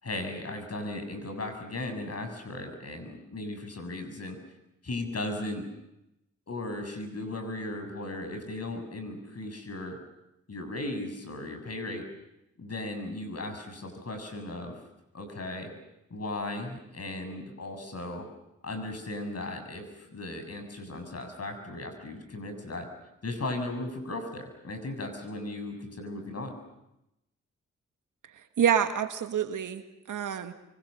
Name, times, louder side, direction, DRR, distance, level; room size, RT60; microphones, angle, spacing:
voice 1, 0.0-4.4 4.8-5.7 6.5-10.0 10.5-12.0 12.6-14.8 15.1-15.7 16.1-18.3 18.6-22.9 23.2-26.6, left 2 dB, 50° left, 6 dB, 7.4 m, -36 dB
voice 2, 28.3-30.5, right 8 dB, 70° right, 8 dB, 2.0 m, -28 dB
30.0 x 25.0 x 6.6 m, 0.87 s
supercardioid pair, 40°, 32 cm